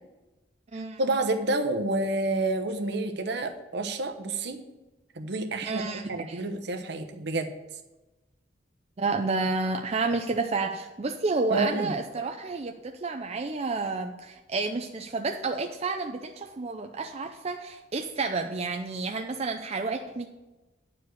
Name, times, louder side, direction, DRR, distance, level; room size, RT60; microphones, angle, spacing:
voice 1, 1.0-4.6 5.1-7.5 11.5-11.9, right 2 dB, 65° right, 5 dB, 1.0 m, -29 dB
voice 2, 5.6-6.4 9.0-20.3, right 3 dB, 35° right, 4 dB, 0.5 m, -30 dB
9.9 x 4.8 x 7.9 m, 1.1 s
head